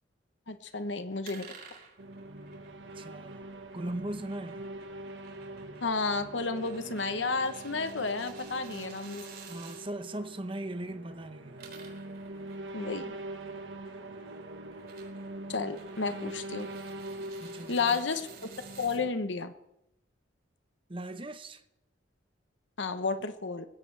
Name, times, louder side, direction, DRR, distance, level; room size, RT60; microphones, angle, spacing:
voice 1, 0.5-1.5 5.8-9.2 12.7-13.2 15.5-16.7 17.7-18.3 18.8-19.5 22.8-23.6, left 4 dB, 85° left, 1.1 m, -31 dB
sound 1, 1.2-9.8 11.4-19.0, right 6 dB, 55° right, 4.4 m, -53 dB
sound 2, 2.0-19.1, right 2 dB, 80° right, 1.6 m, -43 dB
voice 2, 2.9-3.5 3.7-4.7 9.5-11.7 17.4-18.0 20.9-21.6 23.2-23.3, right 1 dB, 30° right, 1.0 m, -39 dB
20.5 x 16.5 x 3.4 m
head